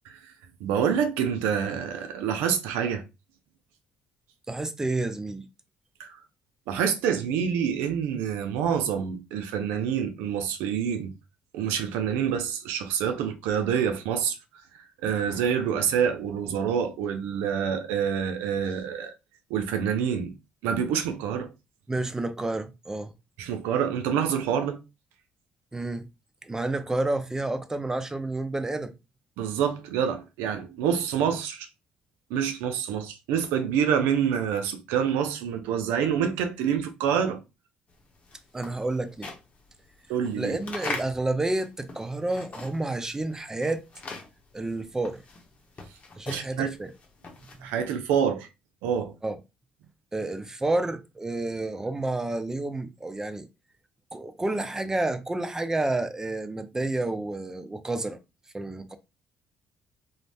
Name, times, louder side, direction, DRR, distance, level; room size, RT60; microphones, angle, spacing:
voice 1, 0.6-3.0 6.0-6.2 6.7-11.1 11.5-14.4 15.0-19.1 19.5-20.3 20.6-21.5 23.4-24.8 29.4-31.7 32.3-37.4 40.1-40.6 46.3-46.7 47.6-48.5 48.8-49.1, right 8 dB, 90° right, 0.4 m, -27 dB
voice 2, 4.5-5.5 21.9-23.1 25.7-26.0 26.4-28.9 38.5-39.3 40.3-43.8 44.5-45.2 46.2-46.9 47.6-47.7 49.2-49.4 50.1-53.5 54.1-58.2 58.5-59.0, right 2 dB, 15° right, 0.5 m, -30 dB
sound 1, 38.0-43.0 43.3-47.8, left 3 dB, 40° left, 0.8 m, -40 dB
2.5 x 2.1 x 3.3 m
supercardioid pair, 80°, 4 cm